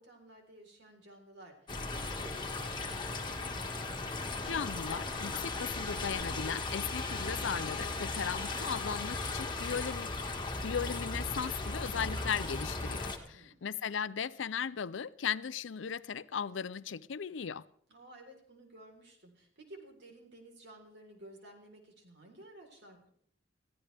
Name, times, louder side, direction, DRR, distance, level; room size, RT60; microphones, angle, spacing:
voice 1, 0.0-3.5 13.3-13.6 17.9-23.1, right 1 dB, 60° right, 4.0 m, -54 dB
sound 1, 1.7-13.2, left 3 dB, 25° left, 1.7 m, -37 dB
voice 2, 4.5-10.1 10.6-17.6, left 7 dB, 70° left, 0.5 m, -37 dB
21.5 x 15.0 x 3.4 m
head